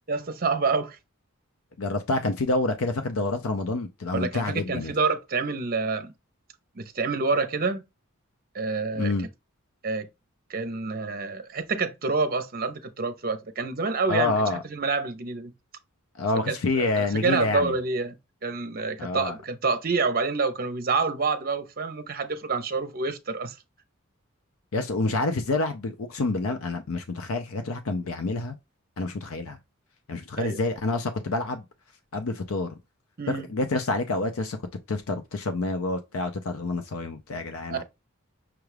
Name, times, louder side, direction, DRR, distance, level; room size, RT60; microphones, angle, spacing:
voice 1, 0.1-1.0 4.1-6.1 6.8-7.8 8.5-9.1 9.8-10.1 10.5-15.5 16.5-18.2 18.4-23.6 30.4-30.6 33.2-33.5 37.7-37.8, right 4 dB, 45° right, 0.6 m, -27 dB
voice 2, 1.8-4.9 8.9-9.3 14.1-14.6 16.2-17.7 19.0-19.3 24.7-28.6 29.0-29.6 30.1-31.6 32.1-32.7 33.3-34.6 34.9-37.8, left 2 dB, 70° left, 0.6 m, -28 dB
6.0 x 2.3 x 3.2 m
head